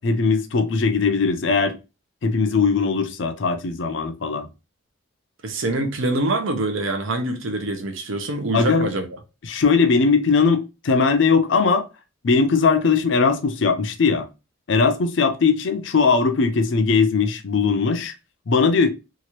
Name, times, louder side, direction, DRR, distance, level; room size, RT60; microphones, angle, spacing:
voice 1, 0.0-1.8 2.2-4.5 8.5-8.9 9.5-11.8 12.2-14.3 14.7-18.1 18.5-18.9, left 4 dB, 65° left, 0.5 m, -19 dB
voice 2, 5.4-9.1, right 2 dB, 75° right, 0.6 m, -25 dB
2.9 x 2.4 x 2.8 m
head